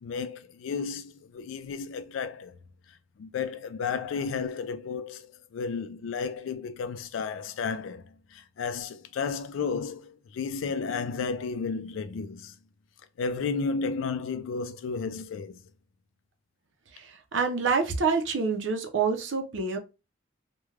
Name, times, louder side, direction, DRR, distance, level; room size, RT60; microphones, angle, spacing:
voice 1, 0.0-2.6 2.9-12.5 13.2-15.6, left 5 dB, 80° left, 0.3 m, -33 dB
voice 2, 16.9-19.8, right 5 dB, 70° right, 0.6 m, -27 dB
3.2 x 2.2 x 2.3 m
head